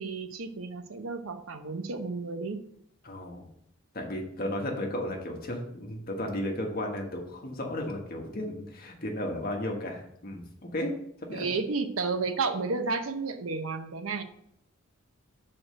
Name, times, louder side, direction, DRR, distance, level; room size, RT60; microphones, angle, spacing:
voice 1, 0.0-2.6 11.3-14.2, right 4 dB, 80° right, 8 dB, 0.8 m, -32 dB
voice 2, 3.0-3.4 3.9-10.9 11.2-11.5, left 1 dB, 45° left, 1 dB, 1.3 m, -34 dB
6.2 x 4.4 x 6.2 m, 0.72 s
head